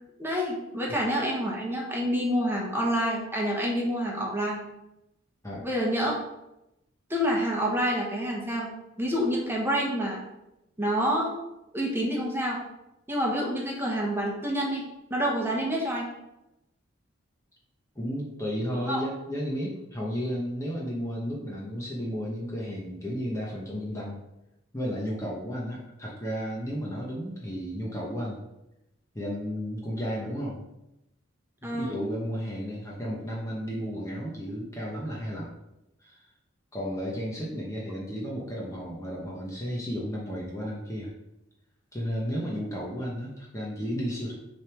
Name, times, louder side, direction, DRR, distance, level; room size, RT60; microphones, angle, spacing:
voice 1, 0.2-4.6 5.6-6.1 7.1-8.7 9.0-10.2 10.8-11.4 11.7-12.6 13.1-14.8 15.1-16.1 18.9-19.0 31.6-31.9, equal, 10° right, -2 dB, 1.2 m, -27 dB
voice 2, 17.9-24.2 24.7-28.4 29.1-30.6 31.6-35.5 36.0-36.3 36.7-41.1 41.9-44.3, equal, 15° left, -4 dB, 1.0 m, -33 dB
6.5 x 3.5 x 4.5 m, 0.90 s
head